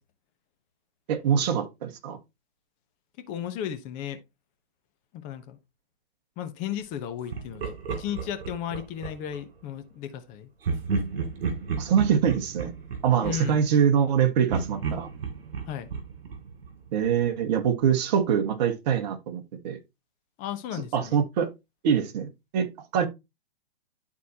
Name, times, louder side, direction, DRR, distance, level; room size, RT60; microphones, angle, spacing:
voice 1, 1.1-2.2 11.8-12.7 13.0-15.1 16.9-19.8 20.9-21.5 21.8-22.7 22.9-23.1, right 8 dB, 40° right, 1.5 m, -24 dB
voice 2, 3.2-4.2 5.1-5.6 6.4-10.5 13.2-13.6 15.7-15.9 20.4-21.2, left 10 dB, 25° left, 0.9 m, -35 dB
Laughter, 7.3-9.4 10.6-14.1 14.5-17.2, right 5 dB, 65° right, 2.9 m, -33 dB
11.5 x 4.2 x 2.8 m
hypercardioid pair, 140°, 31 cm